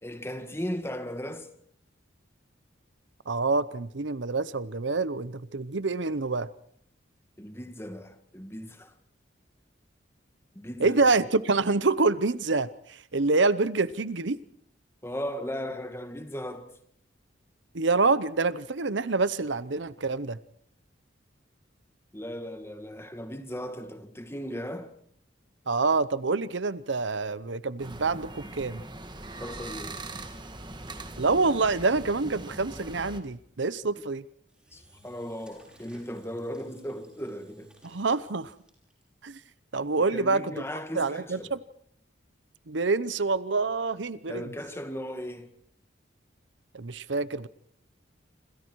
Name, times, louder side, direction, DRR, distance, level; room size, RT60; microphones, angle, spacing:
voice 1, 0.0-1.5 7.4-8.9 10.5-11.0 15.0-16.8 22.1-24.9 29.4-30.0 34.7-37.7 40.1-41.5 44.3-45.5, equal, 15° left, 2.0 m, -37 dB
voice 2, 3.3-6.5 10.8-14.4 17.7-20.4 25.7-28.8 31.2-34.2 37.8-38.5 39.2-39.4 39.7-40.5 40.9-41.6 42.7-44.5 46.7-47.5, right 3 dB, 75° right, 0.9 m, -26 dB
sound 1, 27.8-33.2, right 2 dB, 25° right, 1.7 m, -41 dB
Engine / Drill, 34.5-39.0, right 1 dB, 5° right, 5.9 m, -59 dB
27.0 x 26.5 x 4.7 m
head